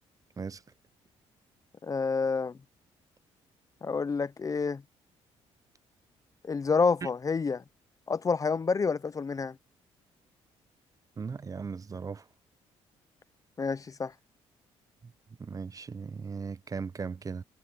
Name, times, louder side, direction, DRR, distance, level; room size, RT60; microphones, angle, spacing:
voice 1, 1.8-2.6 3.8-4.8 6.4-7.6 8.1-9.6 13.6-14.1, left 5 dB, 30° left, 0.5 m, -28 dB
voice 2, 11.2-12.3 15.0-15.1 15.4-17.4, right 5 dB, 30° right, 0.6 m, -38 dB
cardioid pair, 85°, 12 cm